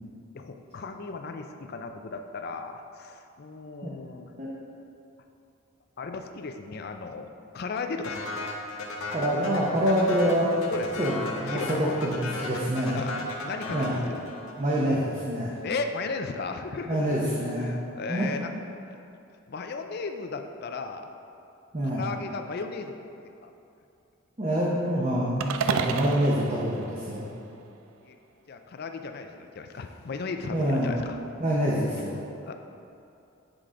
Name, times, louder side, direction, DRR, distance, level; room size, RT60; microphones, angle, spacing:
voice 1, 0.3-4.3 6.0-7.3 7.5-8.4 10.7-11.2 11.5-12.0 12.9-13.2 13.4-14.2 15.6-17.0 17.6-18.5 18.8-19.0 19.5-21.1 21.8-23.0 23.4-23.5 28.0-28.2 28.5-31.2 32.4-32.5, left 4 dB, 50° left, 6 dB, 0.4 m, -35 dB
sound 1, 8.0-14.7, left 2 dB, 80° left, 0.9 m, -36 dB
voice 2, 9.1-10.7 11.0-12.2 12.4-13.1 13.7-14.0 14.6-15.5 16.9-17.7 18.1-18.3 21.7-22.0 24.4-27.3 30.5-30.9 31.4-32.2, equal, 30° right, -6 dB, 0.7 m, -26 dB
sound 2, 25.4-27.7, right 6 dB, 75° right, 0.3 m, -31 dB
7.7 x 4.8 x 3.7 m, 2.6 s
head